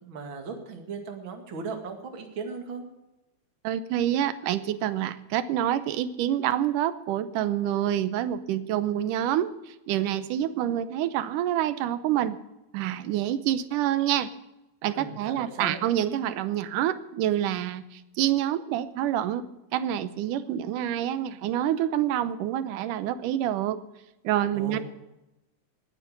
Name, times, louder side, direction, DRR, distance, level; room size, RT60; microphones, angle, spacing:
voice 1, 0.0-2.9 14.9-15.8 24.5-24.8, right 4 dB, 40° right, 4 dB, 2.6 m, -37 dB
voice 2, 3.6-12.4 12.7-14.3 14.8-23.8 24.2-24.8, right 11 dB, 90° right, 14 dB, 2.4 m, -27 dB
18.5 x 10.0 x 6.7 m, 0.94 s
omnidirectional pair, 3.7 m